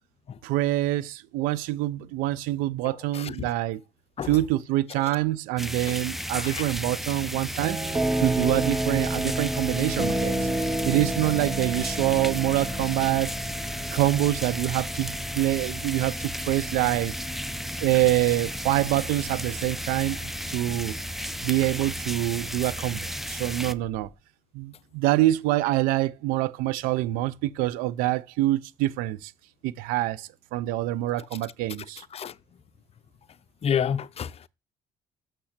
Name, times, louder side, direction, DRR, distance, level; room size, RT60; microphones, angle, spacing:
voice 1, 0.4-3.8 4.3-7.8 8.2-10.5 10.8-13.3 13.9-17.2 17.8-21.0 21.4-24.1 24.5-29.3 29.6-32.0, right 16 dB, 90° right, 0.5 m, -26 dB
voice 2, 2.8-3.5 4.2-4.4 6.4-6.7 32.1-32.4 33.6-34.5, left 8 dB, 45° left, 0.6 m, -30 dB
sound 1, 5.6-23.7, equal, ahead, 0.7 m, -34 dB
sound 2, 7.6-24.1, right 1 dB, 25° right, 2.1 m, -32 dB
6.8 x 5.9 x 6.5 m
supercardioid pair, 70°, 14 cm